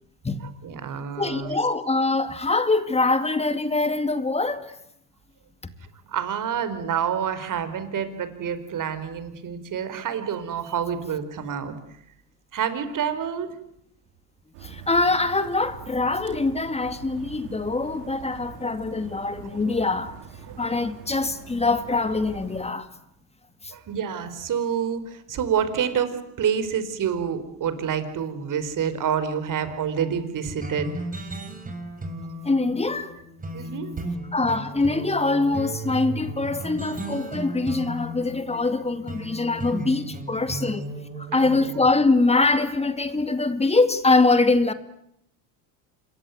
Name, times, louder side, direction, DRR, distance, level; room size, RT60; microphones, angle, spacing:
voice 1, 0.6-1.6 6.1-11.8 12.5-13.5 19.7-19.8 20.5-20.6 23.7-30.9 33.5-34.1 41.3-41.7, right 8 dB, 40° right, 4.6 m, -28 dB
voice 2, 1.2-4.8 14.6-20.1 20.6-22.9 23.6-23.7 32.4-33.1 34.3-40.9 41.2-44.7, left 3 dB, 15° left, 2.2 m, -23 dB
sound 1, 14.5-22.7, right 7 dB, 80° right, 5.3 m, -43 dB
sound 2, 30.6-41.9, right 2 dB, 15° right, 6.3 m, -35 dB
27.0 x 23.0 x 9.5 m
supercardioid pair, 115°, 48 cm